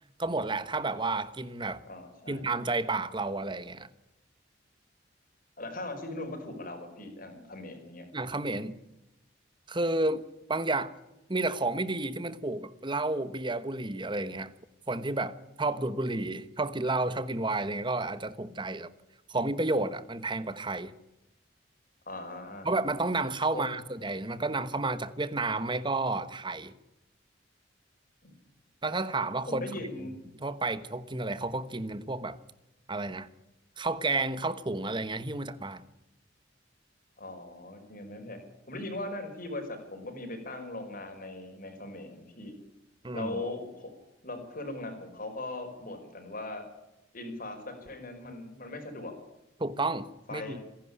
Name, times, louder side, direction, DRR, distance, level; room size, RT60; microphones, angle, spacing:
voice 1, 0.2-1.8 2.3-3.9 8.1-8.8 9.7-10.9 11.3-14.5 14.9-18.9 19.3-20.9 22.6-26.7 28.8-29.6 30.4-32.4 32.9-33.3 33.8-35.8 43.0-43.4 49.6-50.6, right 2 dB, 25° right, 1.2 m, -31 dB
voice 2, 1.8-2.4 5.6-8.1 22.1-22.7 23.5-23.6 28.2-28.3 29.5-30.2 37.2-38.4 38.7-42.6 43.1-43.9 44.2-46.7 47.1-49.1 50.3-50.6, left 2 dB, 50° left, 5.3 m, -39 dB
26.5 x 11.0 x 9.9 m
head